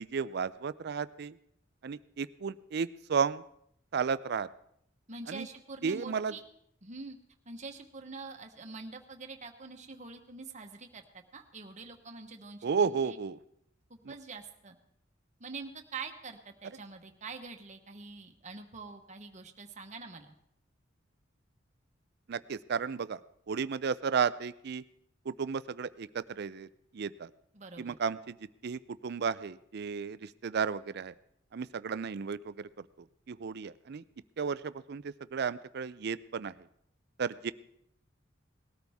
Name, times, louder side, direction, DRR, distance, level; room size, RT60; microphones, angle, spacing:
voice 1, 0.0-1.4 1.8-3.4 3.9-4.5 5.3-5.5 5.8-6.3 12.6-13.4 14.0-14.1 22.3-23.2 23.5-24.8 25.3-26.7 26.9-27.3 27.8-28.4 28.6-31.1 31.5-32.7 33.3-34.0 34.4-36.5 37.2-37.5, right 6 dB, 60° right, 17 dB, 0.5 m, -33 dB
voice 2, 5.1-6.4 6.8-7.2 7.4-13.2 13.9-14.8 15.4-20.3 27.5-28.0, right 4 dB, 40° right, 5 dB, 1.2 m, -45 dB
19.0 x 13.0 x 3.6 m, 0.74 s
head